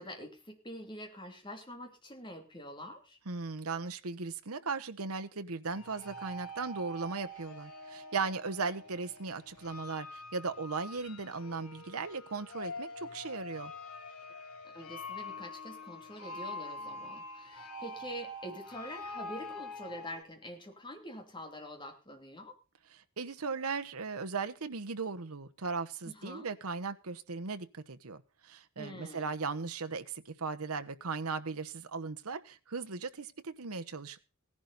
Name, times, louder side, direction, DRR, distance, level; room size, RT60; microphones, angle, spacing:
voice 1, 0.0-3.2 14.6-22.5 26.0-26.5 28.8-29.3, equal, 20° left, 4 dB, 2.8 m, -45 dB
voice 2, 3.3-13.7 23.2-34.2, right 4 dB, 85° right, 9 dB, 1.0 m, -37 dB
sound 1, 5.7-20.2, left 2 dB, 90° left, 2.7 m, -45 dB
17.0 x 11.0 x 4.1 m, 0.33 s
head